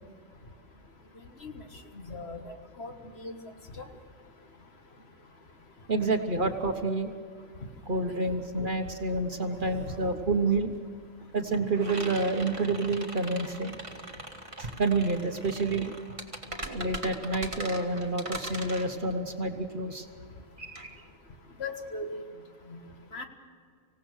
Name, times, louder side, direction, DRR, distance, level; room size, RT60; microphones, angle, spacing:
voice 1, 2.1-2.4 2.8-2.9 3.2-3.4 3.8-3.9 21.6-22.2 22.7-22.8 23.1-23.3, left 3 dB, 55° left, 5 dB, 1.7 m, -37 dB
voice 2, 5.9-7.1 7.9-10.7 11.3-13.8 14.6-15.9 16.6-20.1 20.6-21.0, right 3 dB, 40° right, 6 dB, 1.2 m, -29 dB
sound 1, 8.8-8.9 9.2-21.9, right 1 dB, 25° right, 1.8 m, -41 dB
25.5 x 17.0 x 6.4 m, 2.1 s
omnidirectional pair, 1.4 m